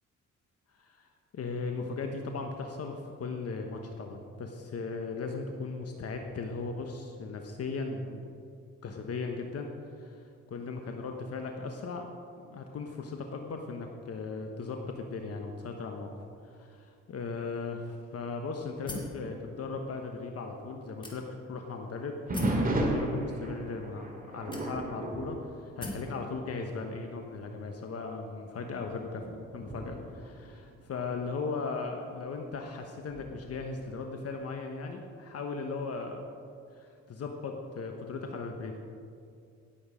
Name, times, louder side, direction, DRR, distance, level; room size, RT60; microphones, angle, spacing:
voice 1, 1.3-8.2 8.8-9.7 10.0-12.1 12.5-16.1 16.4-22.1 22.5-29.3 29.5-36.3 36.7-38.8, left 4 dB, 55° left, 3 dB, 1.2 m, -37 dB
sound 1, 18.9-19.2 20.0-20.1 21.0-21.5 22.3-22.7 23.6-23.7 24.5-25.0 25.8-26.1, left 1 dB, 15° left, 2.6 m, -40 dB
sound 2, 22.3-26.4 26.8-27.1 27.7-27.8 28.6-31.3 33.1-33.6, right 1 dB, 30° right, 2.3 m, -34 dB
17.0 x 7.9 x 5.1 m, 2.4 s
cardioid pair, 90°, 30 cm